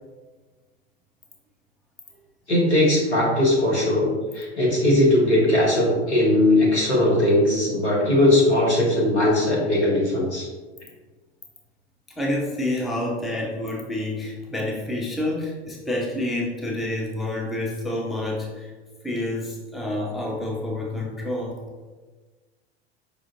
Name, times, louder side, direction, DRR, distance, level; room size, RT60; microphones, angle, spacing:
voice 1, 2.5-10.5, left 1 dB, 85° left, -5 dB, 1.5 m, -19 dB
voice 2, 12.2-18.7 19.0-21.6, left 1 dB, ahead, -3 dB, 0.4 m, -28 dB
5.0 x 2.4 x 2.8 m, 1.3 s
figure-of-eight pair, 90°, 33 cm